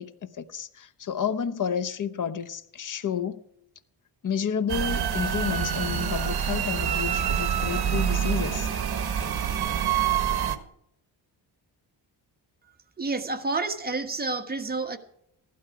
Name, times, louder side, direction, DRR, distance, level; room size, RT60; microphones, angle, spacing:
voice 1, 0.0-3.4 4.2-8.7, left 7 dB, 45° left, 1.0 m, -31 dB
sound 1, 4.7-10.6, right 8 dB, 60° right, 1.4 m, -26 dB
voice 2, 13.0-15.0, right 3 dB, 20° right, 1.5 m, -29 dB
15.0 x 12.5 x 4.9 m
cardioid pair, 120°, 44 cm